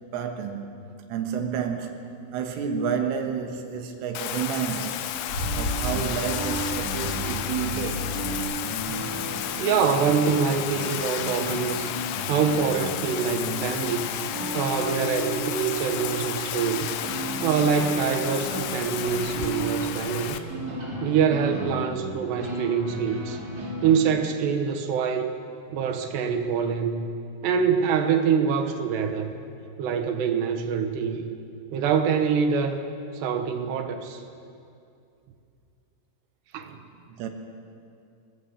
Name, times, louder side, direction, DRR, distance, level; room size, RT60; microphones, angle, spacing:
voice 1, 0.1-0.8 1.1-5.1 5.5-8.2 37.1-37.3, right 7 dB, 85° right, 4 dB, 3.9 m, -30 dB
Bathtub (filling or washing), 4.1-20.4, left 11 dB, 85° left, 3.2 m, -32 dB
Car / Engine starting / Idling, 4.9-8.4, left 1 dB, 35° left, 3.2 m, -33 dB
sound 1, 5.4-24.0, right 1 dB, 20° right, 4.3 m, -34 dB
voice 2, 9.6-11.9 12.3-14.1 14.5-17.0 17.4-20.4 21.0-25.4 25.7-27.1 27.4-29.3 29.8-31.3 31.7-32.9 33.1-34.2 36.5-36.8, right 6 dB, 70° right, 6 dB, 3.1 m, -25 dB
22.0 x 18.5 x 7.5 m, 2.5 s
omnidirectional pair, 5.6 m